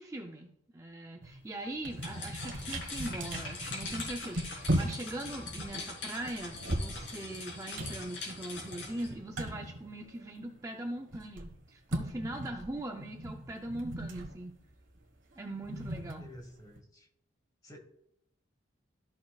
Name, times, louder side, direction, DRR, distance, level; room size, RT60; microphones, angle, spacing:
voice 1, 0.0-14.6 15.4-16.3, right 1 dB, 15° right, 3 dB, 0.4 m, -41 dB
sound 1, 1.2-1.4 1.7-10.6 10.8-16.8, right 1 dB, 80° right, 1.3 m, -38 dB
sound 2, 1.9-9.1, left 3 dB, 65° left, 3.4 m, -42 dB
voice 2, 15.9-17.1 17.6-17.8, equal, 20° left, 4 dB, 1.2 m, -51 dB
13.5 x 6.3 x 2.3 m, 0.77 s
head